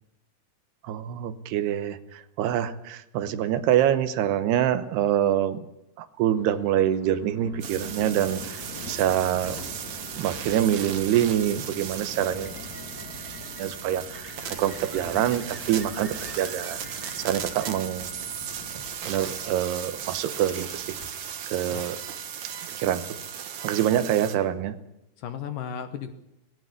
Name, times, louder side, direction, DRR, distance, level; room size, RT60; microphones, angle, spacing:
voice 1, 0.8-5.7 6.0-9.6 10.1-12.6 13.6-16.8 17.2-18.1 18.7-21.0 21.5-22.2 22.8-23.2 23.6-24.8, right 11 dB, 80° right, 13 dB, 3.0 m, -26 dB
Thunder, 6.3-21.1, left 3 dB, 50° left, 3.2 m, -44 dB
sound 1, 7.6-24.4, right 8 dB, 55° right, 2.2 m, -37 dB
sound 2, 12.3-18.3, equal, 5° right, 1.3 m, -48 dB
voice 2, 23.7-24.0 25.2-26.1, left 8 dB, 65° left, 10 dB, 2.4 m, -35 dB
18.5 x 17.0 x 9.6 m, 0.86 s
omnidirectional pair, 4.7 m